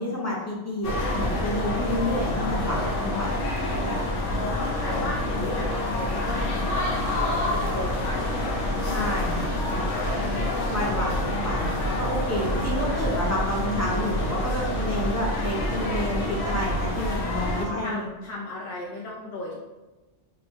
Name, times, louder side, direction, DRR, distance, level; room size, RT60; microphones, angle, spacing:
voice 1, 0.0-3.4 8.8-9.9 10.7-18.1, left 1 dB, 20° left, -5 dB, 0.5 m, -29 dB
sound 1, 0.8-17.6, left 1 dB, 85° left, 1.0 m, -27 dB
voice 2, 3.9-7.4 7.6-8.8 10.1-11.1 12.8-13.0 17.6-19.6, left 2 dB, 65° left, -5 dB, 0.8 m, -36 dB
3.1 x 2.9 x 2.6 m, 1.1 s
omnidirectional pair, 1.2 m